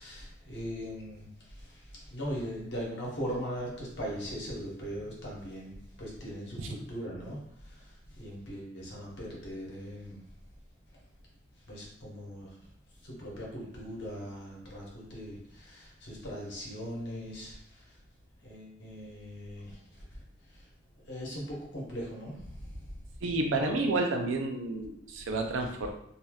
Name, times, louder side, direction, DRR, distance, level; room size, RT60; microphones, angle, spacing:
voice 1, 0.0-10.2 11.7-12.6 13.0-17.9 18.4-20.2 20.5-20.7 21.1-22.8, equal, 60° left, -4 dB, 1.0 m, -40 dB
voice 2, 23.2-25.9, right 2 dB, 75° right, 4 dB, 0.4 m, -30 dB
3.2 x 2.7 x 2.3 m, 0.72 s
head